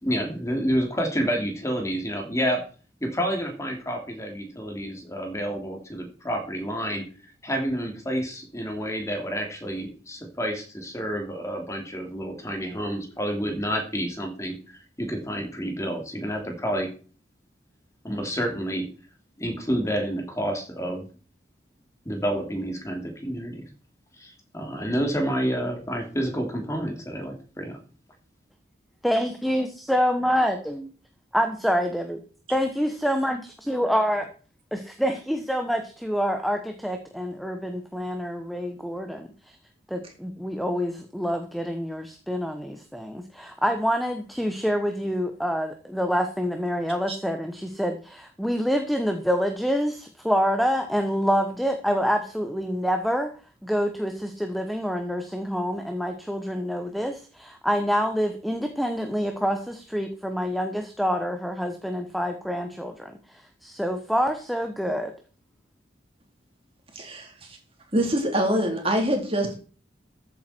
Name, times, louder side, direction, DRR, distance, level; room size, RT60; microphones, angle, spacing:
voice 1, 0.0-2.6 3.0-16.9 18.0-18.9 19.4-21.1 22.0-23.6 24.2-27.8, equal, 15° left, 2 dB, 3.1 m, -29 dB
voice 2, 29.0-30.9 31.3-32.2 32.5-33.4 33.7-34.2 34.7-39.6 39.9-53.3 53.6-65.1, equal, ahead, 6 dB, 1.1 m, -27 dB
voice 3, 66.9-67.6 67.9-69.6, right 1 dB, 30° right, 2 dB, 3.7 m, -25 dB
14.0 x 8.8 x 4.5 m, 0.38 s
head